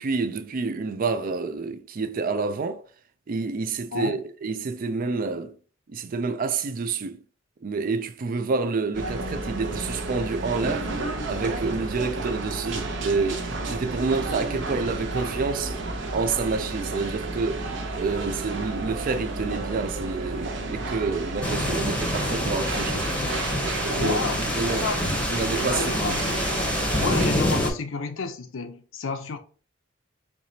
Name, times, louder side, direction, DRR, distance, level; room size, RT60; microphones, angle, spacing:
voice 1, 0.0-2.8 3.3-5.6 5.9-7.2 7.6-10.9 11.3-23.1 24.0-24.2 24.6-24.9 25.3-26.2, right 4 dB, 45° right, 0.4 m, -28 dB
sound 1, 8.9-27.3, right 2 dB, 65° right, 0.8 m, -31 dB
sound 2, 21.4-27.7, left 1 dB, 5° left, 0.8 m, -27 dB
voice 2, 24.0-24.5 24.8-25.3 25.6-26.4 27.0-29.4, left 4 dB, 80° left, 0.6 m, -31 dB
4.6 x 2.9 x 2.7 m
head